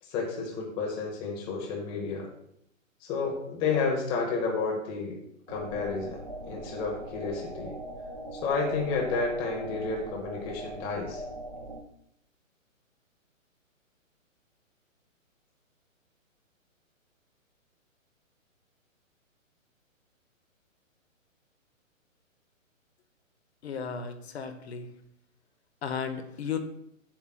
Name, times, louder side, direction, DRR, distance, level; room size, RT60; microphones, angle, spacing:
voice 1, 0.0-2.3 3.0-5.2 5.5-7.7 8.3-11.2, left 4 dB, 15° left, -1 dB, 0.7 m, -31 dB
sound 1, 5.5-11.8, right 1 dB, 25° right, 0.4 m, -40 dB
voice 2, 23.6-24.9 25.8-26.6, left 6 dB, 50° left, 8 dB, 0.8 m, -34 dB
7.2 x 7.0 x 2.3 m, 0.74 s
hypercardioid pair, 145°, 40 cm